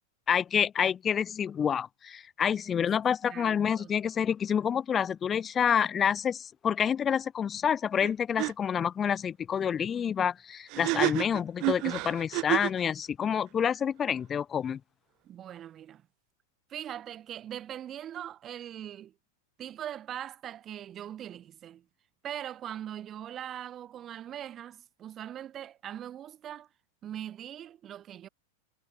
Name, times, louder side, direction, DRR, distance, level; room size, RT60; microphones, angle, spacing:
voice 1, 0.3-14.8, left 8 dB, 25° left, 2.5 m, -28 dB
voice 2, 3.2-4.0 15.2-16.0 16.7-19.1 19.6-21.8 22.2-26.7 27.0-28.3, right 10 dB, 30° right, 7.8 m, -41 dB
sound 1, 8.0-8.1 8.4-8.5 10.7-12.8, right 25 dB, 50° right, 5.4 m, -29 dB
hypercardioid pair, 105°, 0 cm